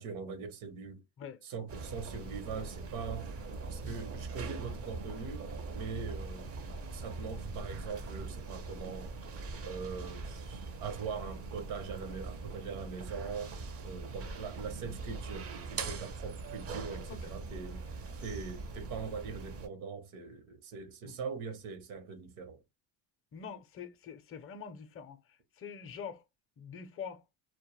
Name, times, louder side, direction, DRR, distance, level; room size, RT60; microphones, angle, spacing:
voice 1, 0.0-1.0 1.4-3.4 3.7-5.5 5.7-9.1 9.6-13.5 13.8-22.6, right 5 dB, 75° right, 0.8 m, -42 dB
sound 1, 1.7-19.7, right 3 dB, 30° right, 0.4 m, -42 dB
voice 2, 23.3-26.2 26.6-27.2, left 7 dB, 30° left, 0.4 m, -45 dB
2.2 x 2.0 x 2.9 m
cardioid pair, 110°, 49 cm